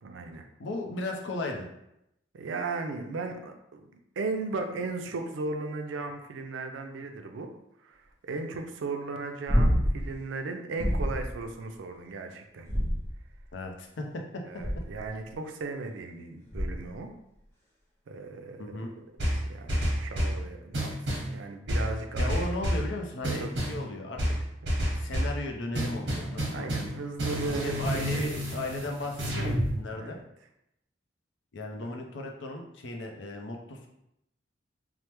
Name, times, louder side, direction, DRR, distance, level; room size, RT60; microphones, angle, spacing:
voice 1, 0.0-0.4 2.3-3.9 4.2-7.5 7.8-12.7 14.5-17.1 18.1-18.6 19.5-22.3 23.2-23.5 25.0-25.1 26.5-28.3 30.0-30.2 31.8-31.9, right 3 dB, 85° right, 5 dB, 0.4 m, -36 dB
voice 2, 0.6-1.7 13.5-14.6 18.6-18.9 22.2-24.2 24.9-26.7 27.6-30.2 31.5-33.9, left 2 dB, 75° left, 2 dB, 0.5 m, -36 dB
sound 1, 9.5-10.1 10.8-11.3 12.6-13.4 14.6-15.1 16.5-17.0 19.3-19.4, equal, 15° left, 0.5 m, -27 dB
sound 2, 19.2-20.4 20.7-21.3 21.7-22.9 23.2-23.8 24.2-25.4 25.7-29.7, equal, 65° right, 0.9 m, -29 dB
3.2 x 2.0 x 3.0 m, 0.81 s
head